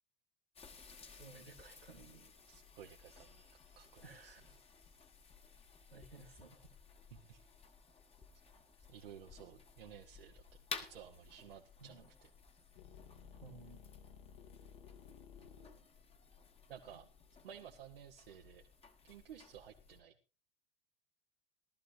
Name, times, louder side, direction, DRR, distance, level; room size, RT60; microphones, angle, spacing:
sound 1, 0.5-20.0, left 5 dB, 20° left, 1.6 m, -55 dB
voice 1, 1.1-2.3 3.1-3.2 4.0-4.4 5.9-6.7 11.8-12.1 13.4-13.8, right 3 dB, 90° right, -3 dB, 2.1 m, -56 dB
voice 2, 2.5-3.4 3.7-4.4 7.1-7.4 8.9-10.4 10.8-12.3 16.7-17.1 17.4-18.6 19.0-20.1, right 9 dB, 70° right, 0 dB, 1.3 m, -55 dB
sound 2, 12.7-17.9, left 7 dB, 60° left, 2.5 m, -57 dB
19.0 x 12.5 x 2.7 m, 0.31 s
figure-of-eight pair, 80°, 29 cm